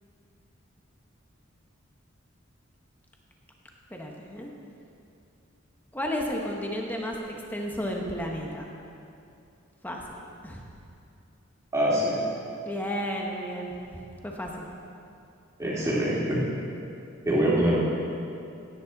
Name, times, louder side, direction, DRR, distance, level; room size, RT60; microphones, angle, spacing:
voice 1, 3.9-4.5 5.9-8.7 9.8-10.1 10.4-10.6 12.6-14.7, equal, 10° left, 0 dB, 1.2 m, -33 dB
voice 2, 11.7-12.2 15.6-16.4 17.2-17.8, right 1 dB, 15° right, -7 dB, 2.7 m, -24 dB
17.0 x 9.6 x 4.1 m, 2.7 s
head